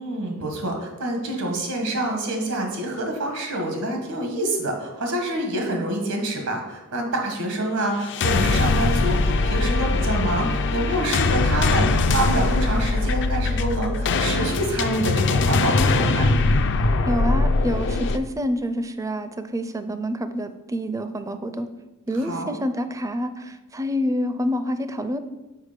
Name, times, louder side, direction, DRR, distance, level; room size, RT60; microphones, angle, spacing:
voice 1, 0.0-16.3 22.1-22.5, right 1 dB, 90° right, 2 dB, 1.5 m, -27 dB
sound 1, 8.0-18.2, left 3 dB, 55° left, 0.5 m, -21 dB
voice 2, 17.1-21.7 22.1-25.2, equal, 15° right, 10 dB, 0.4 m, -27 dB
6.5 x 4.8 x 5.1 m, 1.1 s
head